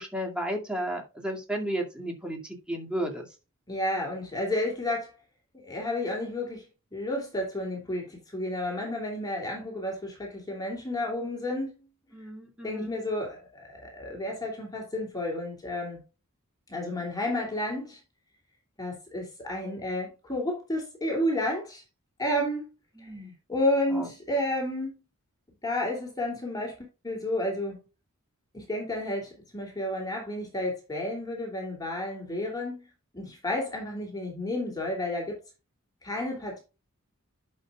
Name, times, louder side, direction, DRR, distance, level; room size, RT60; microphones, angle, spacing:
voice 1, 0.0-3.3 12.1-13.0 23.0-23.3 23.9-24.1, right 1 dB, 5° right, 2.3 m, -33 dB
voice 2, 3.7-5.1 5.6-6.6 6.9-11.7 12.6-16.0 16.7-18.0 18.8-21.8 22.2-22.7 23.5-24.9 25.6-26.8 27.0-27.8 28.5-32.8 33.1-35.4 36.0-36.6, left 1 dB, 20° left, 2.9 m, -31 dB
11.0 x 6.8 x 2.4 m
head